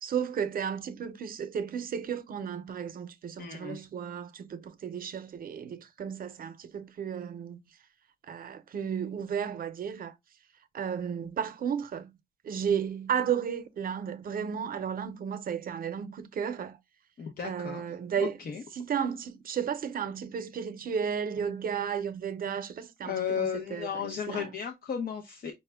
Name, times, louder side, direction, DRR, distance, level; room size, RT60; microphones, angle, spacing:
voice 1, 0.0-7.6 8.3-10.1 10.7-12.1 12.4-16.8 17.4-18.4 18.7-24.5, right 7 dB, 65° right, 0.6 m, -33 dB
voice 2, 3.4-3.8 17.2-17.8 18.2-18.6 23.0-25.5, left 7 dB, 75° left, 0.7 m, -34 dB
5.4 x 2.1 x 3.3 m
wide cardioid pair, 155°, 16 cm